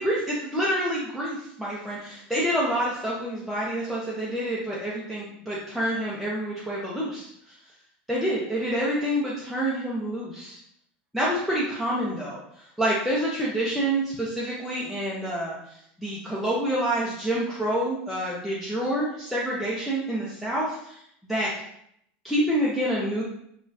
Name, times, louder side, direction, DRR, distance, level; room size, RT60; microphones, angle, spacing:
voice 1, 0.0-7.3 8.1-10.6 11.1-21.0 21.2-21.5 22.2-23.2, right 1 dB, ahead, -8 dB, 0.6 m, -27 dB
6.0 x 2.4 x 2.6 m, 0.73 s
supercardioid pair, 155°, 5 cm